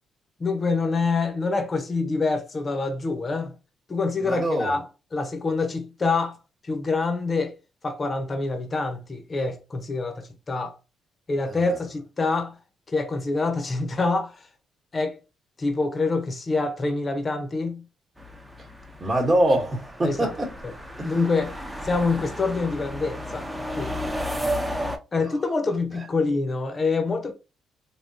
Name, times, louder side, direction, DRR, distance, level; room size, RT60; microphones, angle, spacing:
voice 1, 0.4-3.5 3.9-6.4 6.6-7.5 7.8-10.8 11.3-12.6 12.9-14.4 14.9-15.2 15.6-17.8 20.0-20.3 21.0-23.5 23.7-24.0 25.1-27.3, left 3 dB, 35° left, 0.7 m, -26 dB
voice 2, 4.2-4.7 11.5-11.6 19.0-20.5 21.0-21.1, right 1 dB, 25° right, 1.1 m, -24 dB
sound 1, 18.2-25.0, equal, 10° right, 0.6 m, -33 dB
3.4 x 2.2 x 2.7 m
cardioid pair, 90°, 0 cm